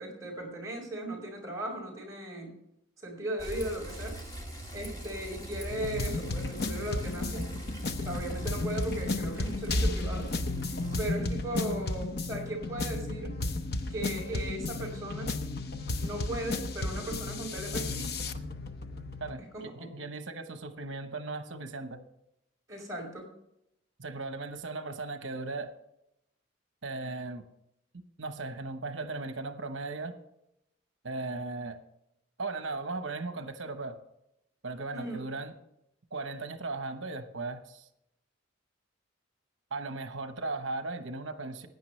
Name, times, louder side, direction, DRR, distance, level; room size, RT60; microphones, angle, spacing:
voice 1, 0.0-2.6 3.0-4.2 4.7-7.5 8.0-10.3 11.0-13.4 13.9-15.4 16.0-18.1 19.5-19.9 22.7-23.3 34.9-35.2, right 1 dB, 15° right, -3 dB, 5.1 m, -37 dB
Bicycle, 3.4-11.1, right 1 dB, 20° left, 2.1 m, -41 dB
sound 1, 5.7-19.4, left 2 dB, 50° left, 0.8 m, -33 dB
voice 2, 19.2-22.0 24.0-25.7 26.8-27.4 28.2-30.2 31.0-31.8 32.4-34.0 34.6-35.5 36.1-37.9 39.7-41.7, right 3 dB, 70° right, 8 dB, 1.1 m, -37 dB
16.0 x 10.0 x 3.3 m, 0.81 s
head